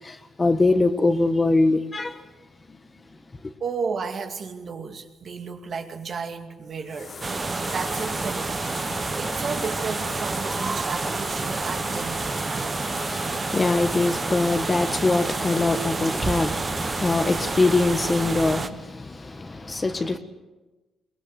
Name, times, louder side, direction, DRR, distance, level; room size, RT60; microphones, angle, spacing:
voice 1, 0.0-2.2 2.7-2.8 3.4-3.5 12.8-20.2, left 3 dB, 25° left, 1.6 m, -23 dB
voice 2, 3.6-8.6 9.0-12.4, right 5 dB, 50° right, 2.4 m, -33 dB
sound 1, 6.9-18.6, left 4 dB, 40° left, 2.0 m, -38 dB
sound 2, 7.2-18.7, right 4 dB, 30° right, 1.2 m, -29 dB
22.5 x 19.5 x 8.2 m
cardioid pair, 90°, 0 cm